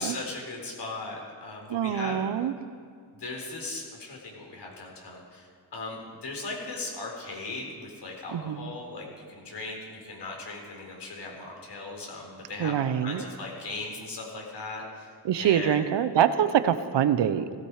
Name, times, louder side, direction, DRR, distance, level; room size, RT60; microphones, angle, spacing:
voice 1, 0.0-2.2 3.2-15.1 15.4-15.8, left 3 dB, 70° left, 0 dB, 4.7 m, -38 dB
voice 2, 1.7-2.5 8.3-8.7 12.6-13.2 15.2-17.5, right 9 dB, 75° right, 12 dB, 1.0 m, -25 dB
16.0 x 15.5 x 5.0 m, 2.1 s
cardioid pair, 75°, 43 cm